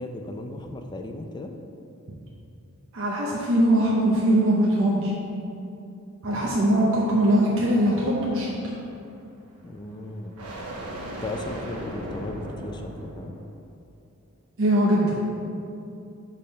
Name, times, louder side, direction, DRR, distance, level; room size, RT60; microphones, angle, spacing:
voice 1, 0.0-1.6 9.6-10.4 11.1-13.3, left 1 dB, 20° left, 4 dB, 0.4 m, -36 dB
voice 2, 2.9-5.1 6.2-8.5 14.6-15.2, right 1 dB, 60° right, -4 dB, 0.7 m, -21 dB
sound 1, 7.0-13.5, right 1 dB, 85° right, 1.1 m, -39 dB
6.5 x 3.5 x 5.5 m, 2.7 s
head